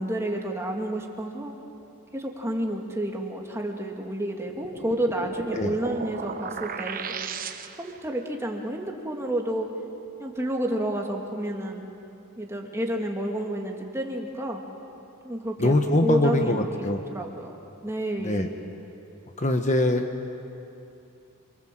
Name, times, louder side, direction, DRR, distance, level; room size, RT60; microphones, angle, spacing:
voice 1, 0.0-1.5 2.1-7.2 7.8-9.7 10.2-12.0 12.4-14.6 15.2-15.8 16.0-16.7 17.1-17.5 17.8-18.5, right 1 dB, 10° right, 1 dB, 2.3 m, -30 dB
sound 1, 4.4-8.0, right 5 dB, 40° right, 1.0 m, -36 dB
voice 2, 15.6-17.0 18.2-18.5 19.4-20.0, left 1 dB, 35° left, 5 dB, 1.2 m, -23 dB
27.5 x 23.5 x 7.6 m, 2.8 s
head